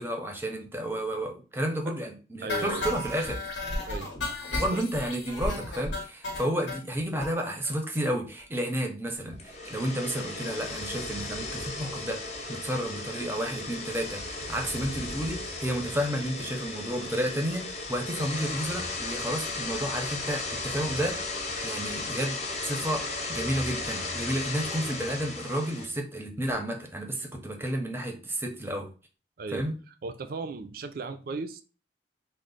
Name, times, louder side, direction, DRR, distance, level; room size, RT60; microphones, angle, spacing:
voice 1, 0.0-3.4 4.6-28.9 29.5-29.7, equal, 15° right, 3 dB, 0.6 m, -31 dB
voice 2, 2.4-2.9 3.9-4.1 4.5-4.8 29.4-29.7 30.0-31.6, right 4 dB, 55° right, 9 dB, 0.4 m, -36 dB
sound 1, 2.5-6.8 7.2-7.3 7.6-7.7 8.0-8.1 8.4-8.5, left 2 dB, 85° left, 0.9 m, -33 dB
sound 2, 9.3-25.9, left 3 dB, 40° left, 0.6 m, -35 dB
3.2 x 2.1 x 3.8 m, 0.35 s
head